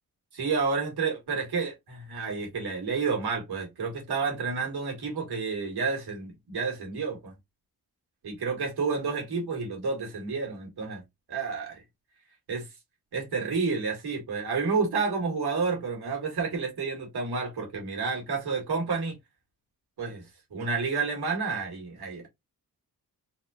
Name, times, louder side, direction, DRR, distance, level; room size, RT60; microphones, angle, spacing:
voice 1, 0.3-7.3 8.2-11.0 11.3-11.8 12.5-12.7 13.1-19.2 20.0-22.3, right 4 dB, 80° right, 1.9 m, -30 dB
4.0 x 2.3 x 2.7 m
wide cardioid pair, 105°, 38 cm